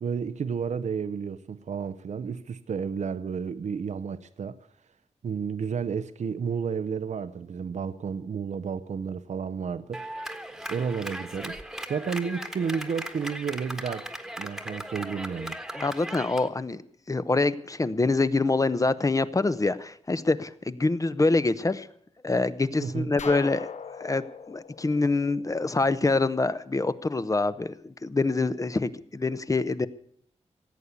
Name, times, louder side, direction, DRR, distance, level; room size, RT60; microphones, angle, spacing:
voice 1, 0.0-4.6 5.2-10.0 10.7-11.6 11.9-14.1 14.4-15.6 22.8-23.1, right 6 dB, 80° right, 0.7 m, -31 dB
Clapping, 9.9-16.5, right 1 dB, 5° right, 1.4 m, -38 dB
voice 2, 15.7-16.8 17.1-21.9 22.2-23.7 24.0-29.9, left 3 dB, 30° left, 0.8 m, -25 dB
sound 1, 23.2-26.0, left 6 dB, 75° left, 1.0 m, -40 dB
16.5 x 8.4 x 9.4 m
wide cardioid pair, 105°, 12 cm